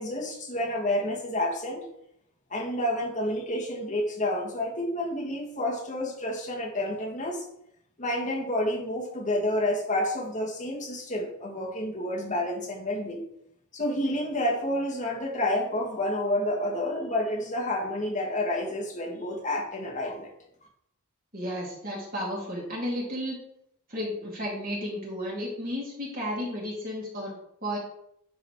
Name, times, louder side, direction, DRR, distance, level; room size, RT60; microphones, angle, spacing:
voice 1, 0.0-1.8 2.5-7.4 8.0-13.2 13.7-20.3, left 1 dB, 35° left, -2 dB, 1.9 m, -29 dB
voice 2, 21.3-23.4 23.9-27.3 27.6-27.8, equal, 40° right, -4 dB, 2.6 m, -33 dB
10.0 x 4.0 x 4.8 m, 0.74 s
head